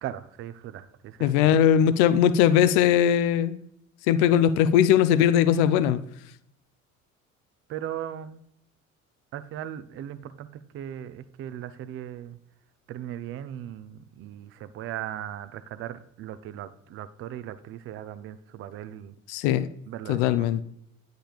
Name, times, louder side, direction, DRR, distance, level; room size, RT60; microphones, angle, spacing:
voice 1, 0.0-1.5 7.7-8.4 9.3-12.4 12.9-19.1 19.9-20.5, right 11 dB, 30° right, 13 dB, 0.5 m, -38 dB
voice 2, 1.2-3.6 4.1-6.0 19.3-19.7 20.1-20.6, left 9 dB, 55° left, 14 dB, 0.5 m, -20 dB
9.9 x 5.2 x 2.4 m, 0.72 s
figure-of-eight pair, 60°, 41 cm